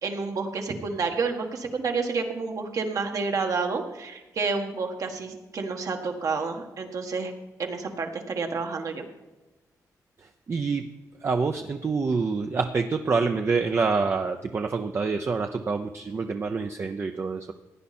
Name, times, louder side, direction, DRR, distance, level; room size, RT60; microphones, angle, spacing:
voice 1, 0.0-7.3 7.6-9.1, right 4 dB, 60° right, 4 dB, 1.6 m, -29 dB
voice 2, 10.5-10.9 11.2-17.5, right 4 dB, 40° right, 5 dB, 0.6 m, -26 dB
16.5 x 9.7 x 4.3 m, 1.1 s
cardioid pair, 110°, 6 cm